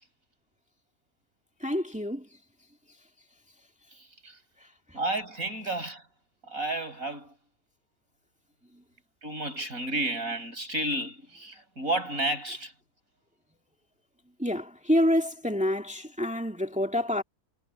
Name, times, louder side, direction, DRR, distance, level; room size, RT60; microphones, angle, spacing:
voice 1, 1.6-2.3 14.4-17.2, left 1 dB, 5° right, 2.2 m, -27 dB
voice 2, 4.0-4.4 4.9-6.0 6.5-7.3 9.2-12.7, right 2 dB, 60° right, 6.8 m, -32 dB
omnidirectional pair, 1.6 m